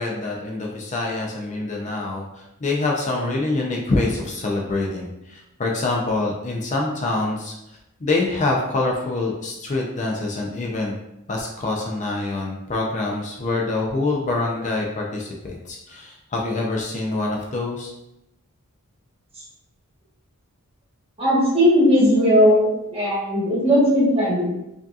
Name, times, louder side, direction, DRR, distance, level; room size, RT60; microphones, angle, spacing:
voice 1, 0.0-11.0 11.3-17.9, left 2 dB, 35° left, -1 dB, 0.5 m, -25 dB
voice 2, 21.2-24.5, equal, 25° right, -6 dB, 1.2 m, -17 dB
4.9 x 2.7 x 2.4 m, 0.88 s
head